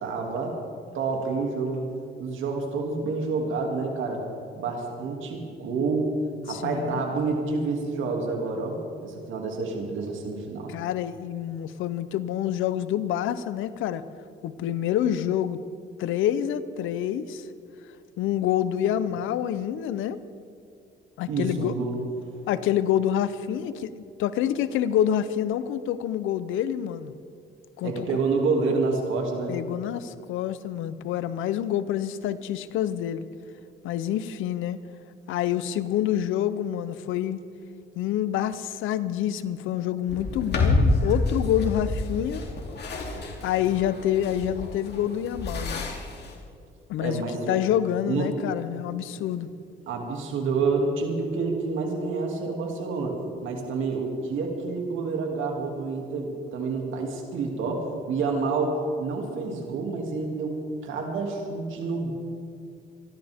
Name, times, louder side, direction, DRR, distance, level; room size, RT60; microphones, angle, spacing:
voice 1, 0.0-0.6 0.9-1.9 2.2-4.2 4.5-6.1 6.4-10.7 21.3-22.0 27.8-29.5 47.0-47.6 48.1-48.3 49.9-60.6 60.8-62.1, right 4 dB, 80° right, 1 dB, 2.6 m, -28 dB
voice 2, 6.5-7.0 10.7-14.0 14.4-15.6 16.0-17.5 18.2-20.2 21.2-21.7 22.5-27.1 27.8-28.1 29.5-33.3 33.8-34.8 35.3-37.4 38.0-42.4 43.4-45.8 46.9-49.5, left 11 dB, 90° left, 14 dB, 0.7 m, -27 dB
sound 1, 40.1-46.3, left 2 dB, 55° left, 2.9 m, -28 dB
26.5 x 12.0 x 3.6 m, 2.5 s
cardioid pair, 90°, 20 cm